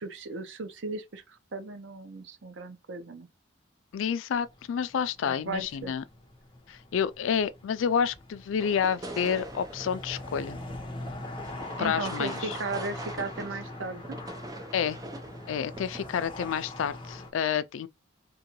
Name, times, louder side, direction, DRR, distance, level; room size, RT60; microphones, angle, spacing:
voice 1, 0.0-3.3 5.2-5.9 11.8-14.2, right 3 dB, 70° right, 0.6 m, -36 dB
voice 2, 3.9-6.0 6.7-10.6 11.8-12.6 14.7-15.0 15.5-17.9, left 7 dB, 80° left, 0.3 m, -29 dB
sound 1, 4.3-17.3, left 2 dB, 25° left, 0.8 m, -42 dB
sound 2, 8.6-16.7, right 1 dB, 20° right, 0.5 m, -43 dB
3.7 x 2.2 x 2.9 m
head